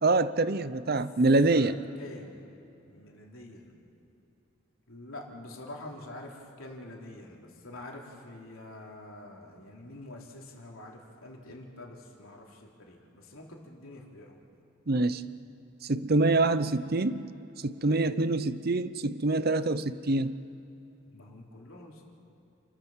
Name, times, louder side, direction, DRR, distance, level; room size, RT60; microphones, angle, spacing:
voice 1, 0.0-1.8 14.9-15.2 15.8-17.3 17.6-20.4, right 2 dB, 45° right, 13 dB, 0.7 m, -25 dB
voice 2, 1.5-2.4 2.9-3.7 4.9-14.4 21.1-22.0, left 1 dB, 75° left, -1 dB, 3.3 m, -46 dB
30.0 x 13.0 x 7.3 m, 2.9 s
head